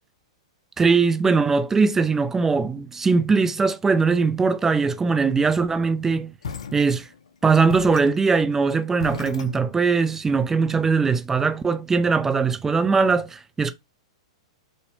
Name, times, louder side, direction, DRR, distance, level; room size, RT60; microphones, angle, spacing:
voice 1, 0.8-6.3 6.7-7.1 7.4-13.7, right 4 dB, 10° right, 0.3 m, -20 dB
sound 1, 6.4-7.3 7.7-10.1, left 6 dB, 80° left, 0.4 m, -36 dB
2.7 x 2.0 x 2.5 m
hypercardioid pair, 115°, 3 cm